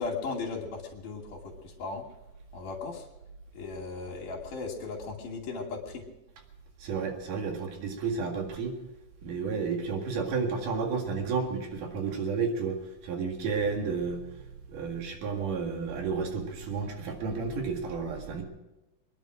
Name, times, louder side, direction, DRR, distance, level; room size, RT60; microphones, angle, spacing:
voice 1, 0.0-2.0 2.5-3.1 3.5-6.0, left 4 dB, 85° left, 0 dB, 4.3 m, -36 dB
voice 2, 6.8-8.8 9.2-14.2 14.7-18.4, right 5 dB, 85° right, 2 dB, 3.6 m, -31 dB
25.5 x 10.5 x 5.0 m, 0.98 s
omnidirectional pair, 3.6 m